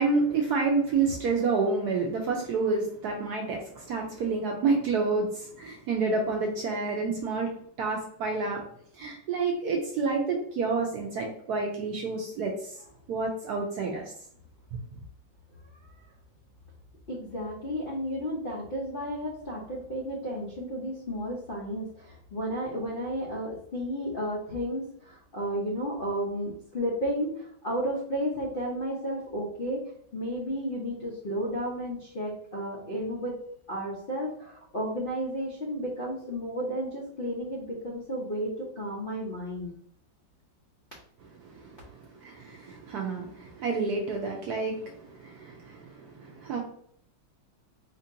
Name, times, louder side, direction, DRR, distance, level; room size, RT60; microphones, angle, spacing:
voice 1, 0.0-7.5 7.8-8.6 9.0-12.7 13.1-14.1 41.4-41.8 42.2-46.6, right 4 dB, 75° right, 0 dB, 0.9 m, -29 dB
voice 2, 17.1-29.8 30.1-33.4 33.7-39.7, equal, 70° left, -5 dB, 0.5 m, -33 dB
4.2 x 2.7 x 2.5 m, 0.65 s
omnidirectional pair, 2.1 m